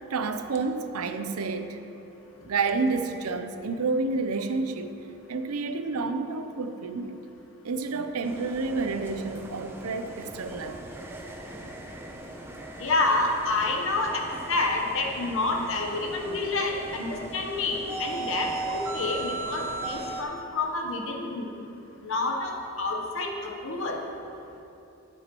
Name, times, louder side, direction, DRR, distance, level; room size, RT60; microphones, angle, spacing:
voice 1, 0.1-1.8 2.5-5.0 5.3-7.2 7.6-10.8, right 3 dB, 85° right, 8 dB, 0.6 m, -29 dB
sound 1, 8.2-20.2, right 2 dB, 10° right, 0.5 m, -38 dB
voice 2, 12.8-21.5 22.0-24.0, left 2 dB, 60° left, 1 dB, 1.0 m, -28 dB
10.5 x 9.0 x 3.0 m, 2.9 s
head